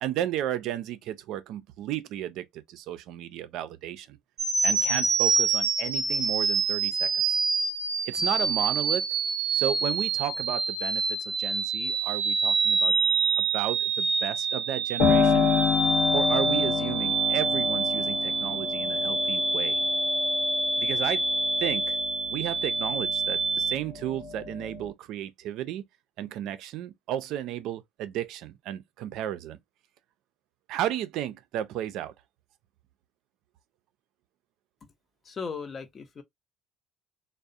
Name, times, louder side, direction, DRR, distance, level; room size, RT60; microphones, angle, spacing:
voice 1, 0.0-4.2 4.6-7.4 8.1-9.1 9.5-12.9 13.4-15.5 16.1-19.8 20.8-21.2 21.6-22.0 22.3-25.8 26.2-29.6 30.7-32.1, right 11 dB, 70° right, 0.4 m, -33 dB
sound 1, 4.4-23.8, right 4 dB, 40° right, 0.7 m, -27 dB
Piano, 15.0-23.4 23.8-24.9, left 5 dB, 85° left, 0.9 m, -28 dB
voice 2, 35.2-36.2, left 5 dB, 35° left, 0.6 m, -37 dB
2.3 x 2.0 x 2.5 m
supercardioid pair, 90°, 0 cm